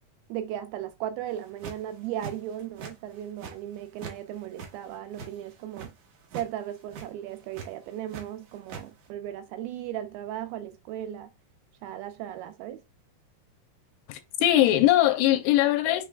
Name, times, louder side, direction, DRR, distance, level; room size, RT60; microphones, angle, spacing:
voice 1, 0.3-5.9 6.3-11.3 11.8-12.8, right 11 dB, 80° right, 2.3 m, -36 dB
sound 1, 1.3-1.9 2.2-2.9 3.2-4.2 4.4-5.9 6.2-6.5 6.8-7.1 7.5-8.2 8.5-8.8, right 6 dB, 65° right, 2.0 m, -41 dB
voice 2, 14.1-16.1, left 13 dB, 85° left, 2.5 m, -21 dB
6.5 x 3.2 x 2.3 m
omnidirectional pair, 4.6 m